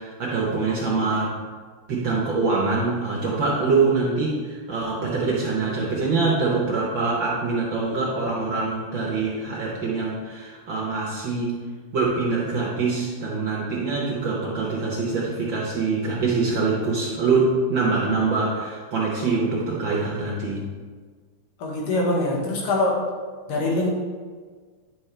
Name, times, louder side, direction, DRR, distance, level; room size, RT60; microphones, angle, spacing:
voice 1, 0.0-1.4 1.9-11.5 11.9-20.6, right 4 dB, 70° right, -4 dB, 1.1 m, -24 dB
voice 2, 21.6-23.0 23.5-23.9, left 2 dB, 85° left, -1 dB, 2.9 m, -23 dB
9.8 x 6.2 x 3.3 m, 1.5 s
omnidirectional pair, 3.6 m